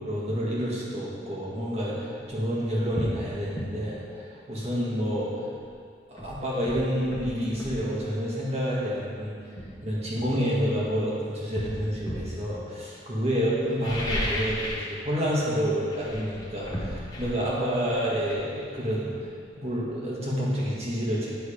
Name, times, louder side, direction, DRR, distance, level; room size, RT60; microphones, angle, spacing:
voice 1, 0.0-5.5 6.1-9.4 9.8-19.3 19.6-21.3, equal, 35° right, -6 dB, 1.7 m, -29 dB
sound 1, 2.2-2.3 2.9-3.2 3.5-3.7 5.6-5.7 6.2-7.8 8.9-9.0 9.6-11.0 11.5-12.4 13.6-14.9 15.2-15.5 15.9-19.4 19.7-19.8, equal, 20° left, 1.2 m, -34 dB
10.5 x 3.9 x 5.0 m, 2.3 s
head